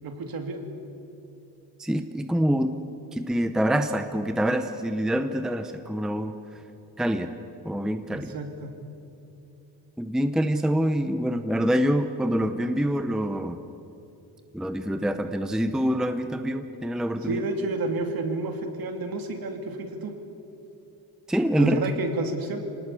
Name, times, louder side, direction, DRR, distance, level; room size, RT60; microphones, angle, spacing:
voice 1, 0.0-0.6 8.1-8.7 17.2-20.1 21.6-22.6, right 2 dB, 60° right, 5 dB, 2.8 m, -30 dB
voice 2, 1.8-2.7 3.1-6.4 7.0-7.3 7.6-8.3 10.0-13.6 14.5-17.4 21.3-21.8, equal, ahead, 8 dB, 0.7 m, -25 dB
26.5 x 19.0 x 8.4 m, 2.8 s
cardioid pair, 165°, 41 cm